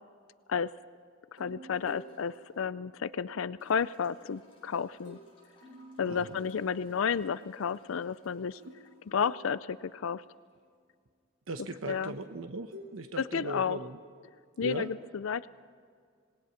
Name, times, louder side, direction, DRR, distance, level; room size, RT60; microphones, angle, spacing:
voice 1, 1.3-5.2 6.0-8.6 9.1-10.2 11.9-12.1 13.3-13.8 14.6-14.9 15.2-15.5, left 6 dB, 80° left, 16 dB, 0.4 m, -32 dB
sound 1, 1.4-3.7 5.0-5.3 5.6-6.9 8.6-10.3 12.2-14.5, left 1 dB, 55° right, 4.4 m, -53 dB
sound 2, 1.7-2.6 3.6-10.6 12.0-12.1, equal, 25° left, 6.1 m, -63 dB
voice 2, 6.1-6.4 8.6-8.8 11.5-14.0 14.6-14.9, right 2 dB, 85° right, 7 dB, 1.0 m, -39 dB
27.0 x 19.5 x 5.8 m, 2.1 s
head